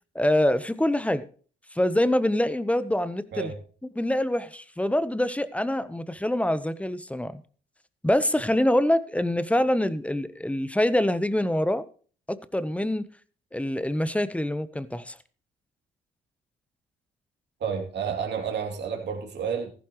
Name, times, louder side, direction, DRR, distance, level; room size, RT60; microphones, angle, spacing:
voice 1, 0.1-1.3 1.7-3.5 3.9-7.4 8.0-11.8 12.3-13.1 13.5-15.2, left 1 dB, 5° left, 14 dB, 0.9 m, -25 dB
voice 2, 17.6-19.7, right 7 dB, 60° right, 2 dB, 2.8 m, -30 dB
14.5 x 11.5 x 3.1 m, 0.41 s
cardioid pair, 90°, 20 cm